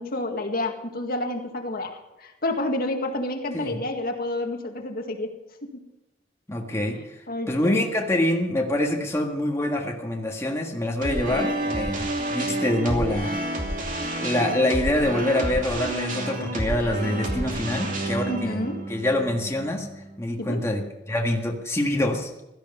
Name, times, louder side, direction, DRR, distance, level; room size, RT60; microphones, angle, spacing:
voice 1, 0.0-5.3 5.6-5.8 6.6-6.7 7.3-7.8 8.9-9.0 11.1-11.6 18.3-18.8 20.4-20.6, left 1 dB, 55° left, 4 dB, 1.9 m, -30 dB
voice 2, 6.5-7.0 7.5-13.3 14.2-18.6 18.9-19.9 20.2-22.3, left 1 dB, 15° left, 1 dB, 1.6 m, -25 dB
sound 1, 11.0-20.2, right 1 dB, 45° right, 2.8 m, -29 dB
16.5 x 13.5 x 5.4 m, 0.96 s
head